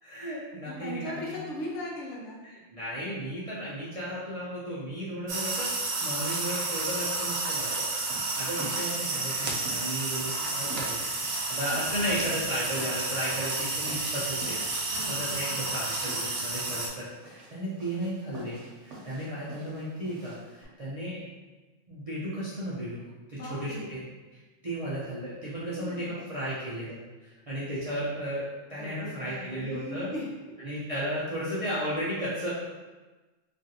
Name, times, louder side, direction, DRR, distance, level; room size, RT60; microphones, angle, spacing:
voice 1, 0.0-1.4 2.4-14.6 15.1-21.2 21.9-23.0 23.3-24.0 24.3-30.1 30.6-32.5, equal, 45° right, -10 dB, 0.4 m, -35 dB
voice 2, 0.6-2.4 14.9-15.8 23.3-24.0 25.7-26.3 28.8-30.3, left 1 dB, 65° left, -3 dB, 0.9 m, -39 dB
sound 1, 5.3-16.9, right 3 dB, 85° right, 1.0 m, -31 dB
sound 2, 8.0-20.7, right 1 dB, 65° right, 1.0 m, -47 dB
3.1 x 2.5 x 2.7 m, 1.2 s
omnidirectional pair, 1.4 m